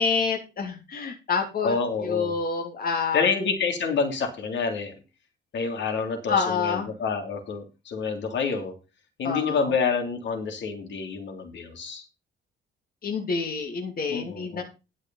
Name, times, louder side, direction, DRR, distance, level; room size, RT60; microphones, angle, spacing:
voice 1, 0.0-1.8 2.0-3.3 6.3-6.9 9.2-9.7 13.0-14.6, left 5 dB, 45° left, 3 dB, 2.9 m, -27 dB
voice 2, 1.6-2.4 3.1-5.0 5.5-8.7 9.2-12.1 14.1-14.6, left 5 dB, 60° left, 5 dB, 3.2 m, -28 dB
11.5 x 6.3 x 5.6 m, 0.29 s
cardioid pair, 100°, 20 cm